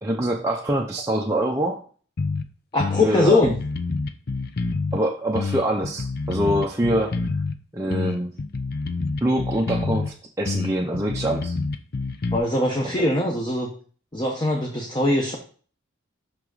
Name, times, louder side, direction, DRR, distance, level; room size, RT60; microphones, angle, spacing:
voice 1, 0.0-1.8 3.0-3.4 4.9-7.1 7.7-8.3 9.2-11.6 12.9-13.1, right 1 dB, 15° right, -1 dB, 0.6 m, -24 dB
sound 1, 2.2-2.4 2.8-5.0 5.3-7.6 7.9-10.1 10.4-12.4, left 3 dB, 50° left, 0.6 m, -27 dB
voice 2, 2.7-3.5 12.3-13.7 14.1-15.4, left 2 dB, 20° left, 0 dB, 1.0 m, -21 dB
6.1 x 5.9 x 3.9 m, 0.42 s
head